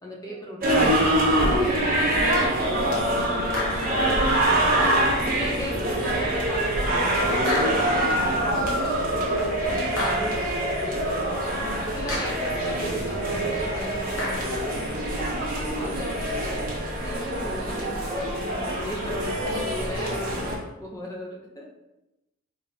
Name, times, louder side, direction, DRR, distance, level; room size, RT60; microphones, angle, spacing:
voice 1, 0.0-3.7 4.4-9.3 9.9-10.3 10.8-16.6 17.0-20.3 20.8-21.8, equal, 15° left, -1 dB, 0.6 m, -37 dB
sound 1, 0.6-20.6, right 1 dB, 40° right, 1.0 m, -25 dB
voice 2, 2.7-3.5 8.4-8.8 15.7-16.1 19.5-19.6, right 1 dB, 80° right, 0 dB, 0.9 m, -40 dB
sound 2, 3.5-4.1 5.6-5.8 7.5-8.2 10.0-10.6 12.1-12.7 14.2-14.7, left 1 dB, 65° left, 1.3 m, -31 dB
3.9 x 3.4 x 3.3 m, 0.96 s
head